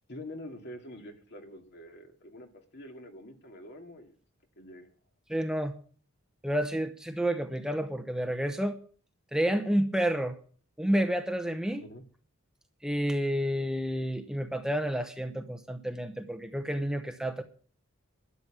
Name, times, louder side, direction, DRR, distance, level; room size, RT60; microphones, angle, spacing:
voice 1, 0.1-4.1 4.6-4.9 11.8-12.0, left 1 dB, 50° left, 3 dB, 2.4 m, -46 dB
voice 2, 5.3-5.7 6.4-8.8 9.3-10.4 10.8-11.8 12.8-17.4, equal, 5° right, 7 dB, 0.8 m, -30 dB
12.5 x 7.6 x 8.9 m, 0.44 s
head